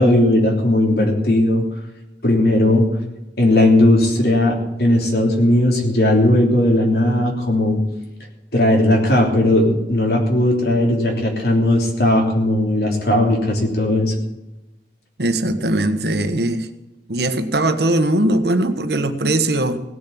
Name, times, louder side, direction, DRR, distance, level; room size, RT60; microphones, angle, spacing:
voice 1, 0.0-1.6 2.2-2.9 3.4-7.8 8.5-14.1, left 1 dB, 65° left, 1 dB, 3.2 m, -17 dB
voice 2, 15.2-16.7 17.1-19.8, right 1 dB, 70° right, 9 dB, 1.3 m, -20 dB
17.0 x 6.9 x 8.6 m, 0.99 s
head